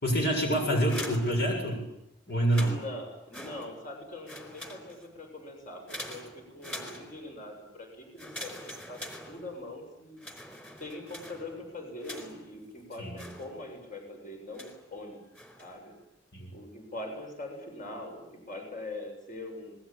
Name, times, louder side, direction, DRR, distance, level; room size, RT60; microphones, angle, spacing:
voice 1, 0.0-1.8 2.3-2.7 13.0-13.2 16.3-16.5, right 1 dB, 60° left, 2 dB, 7.1 m, -27 dB
sound 1, 0.7-2.0 2.4-4.0 4.2-5.2 5.9-7.4 8.2-9.8 10.2-12.6 13.2-13.9 14.5-14.9 15.3-15.8, left 1 dB, 10° left, 4.4 m, -44 dB
voice 2, 2.6-10.2 10.8-15.2 15.6-15.9 16.5-19.8, left 1 dB, 45° left, 2 dB, 7.3 m, -42 dB
27.0 x 21.0 x 9.0 m, 0.79 s
head